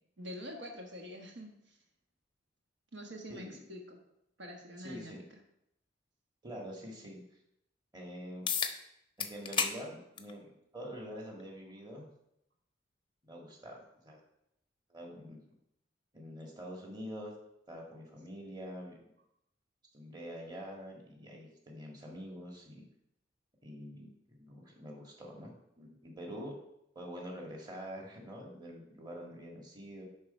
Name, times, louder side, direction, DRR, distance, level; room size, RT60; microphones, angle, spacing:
voice 1, 0.2-1.8 2.9-4.0 4.4-5.2, equal, 70° right, 1 dB, 1.3 m, -46 dB
voice 2, 4.8-5.2 6.4-7.2 7.9-8.5 9.2-12.1 13.2-13.8 14.0-14.2 14.9-15.4 16.1-17.3 17.7-19.0 19.9-22.8 23.6-26.6 26.9-30.0, equal, 25° right, -1 dB, 1.7 m, -46 dB
sound 1, 8.5-8.8 9.2-9.8 10.2-10.3 11.4-11.5 16.4-16.5, left 6 dB, 25° left, 0.6 m, -32 dB
11.0 x 3.8 x 5.4 m, 0.79 s
head